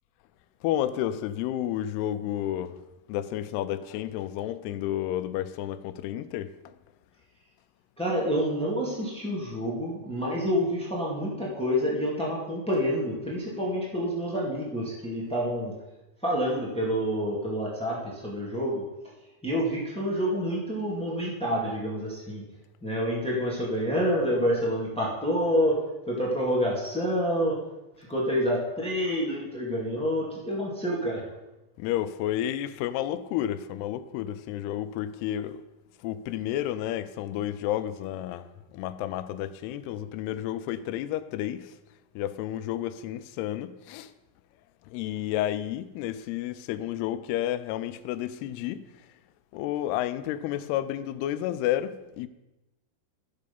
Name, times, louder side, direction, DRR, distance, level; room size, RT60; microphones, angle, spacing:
voice 1, 0.6-2.8 3.1-6.7 31.8-35.6 36.0-41.8 42.2-44.1 44.9-48.9 49.5-52.3, left 12 dB, 90° left, 2.6 m, -31 dB
voice 2, 8.0-15.7 16.2-18.8 19.4-22.4 22.8-25.8 26.1-27.5 28.0-31.2, equal, 10° left, 0.3 m, -28 dB
13.5 x 6.7 x 5.3 m
omnidirectional pair, 4.5 m